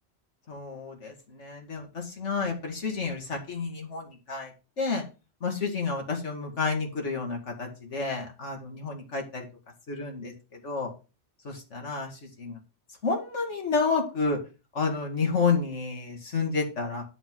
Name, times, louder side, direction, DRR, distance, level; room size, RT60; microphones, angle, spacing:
voice 1, 0.5-4.5 4.8-5.0 5.4-9.4 9.9-10.3 10.6-10.9 11.4-12.1 12.4-12.6 13.0-14.4 14.7-17.0, left 4 dB, 85° left, 1 dB, 2.3 m, -30 dB
11.0 x 3.7 x 7.5 m, 0.31 s
omnidirectional pair, 1.2 m